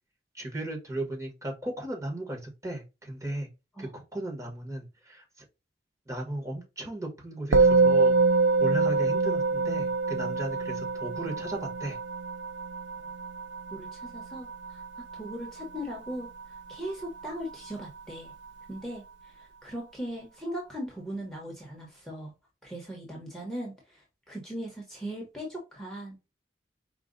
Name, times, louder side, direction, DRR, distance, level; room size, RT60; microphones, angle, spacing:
voice 1, 0.3-3.5 3.8-5.4 6.1-8.2 8.6-12.0, right 1 dB, 15° right, 1 dB, 1.2 m, -36 dB
Musical instrument, 7.5-17.0, right 4 dB, 85° right, 0.4 m, -26 dB
voice 2, 13.7-14.8 15.1-18.3 18.7-22.3 22.6-26.3, equal, ahead, -1 dB, 1.0 m, -39 dB
4.9 x 2.3 x 3.8 m, 0.27 s
head